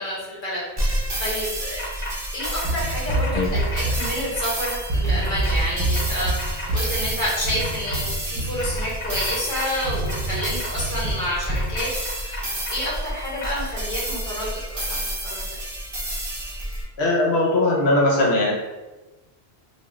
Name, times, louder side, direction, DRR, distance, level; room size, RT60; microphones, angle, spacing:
voice 1, 0.0-1.8 2.3-15.5, equal, 50° left, -7 dB, 1.1 m, -29 dB
sound 1, 0.8-16.8, right 1 dB, 35° right, 0.4 m, -30 dB
sound 2, 1.8-2.1 2.4-2.6 3.1-4.7 5.2-5.5 5.9-6.7 7.6-7.9 8.6-10.7 11.5-12.9 13.4-13.5, left 2 dB, 35° left, 0.7 m, -35 dB
sound 3, 2.6-4.6 4.9-9.4 9.8-11.8, right 2 dB, 55° right, 0.9 m, -27 dB
voice 2, 17.0-18.5, left 2 dB, 75° left, -3 dB, 1.0 m, -19 dB
2.3 x 2.3 x 3.0 m, 1.1 s
omnidirectional pair, 1.1 m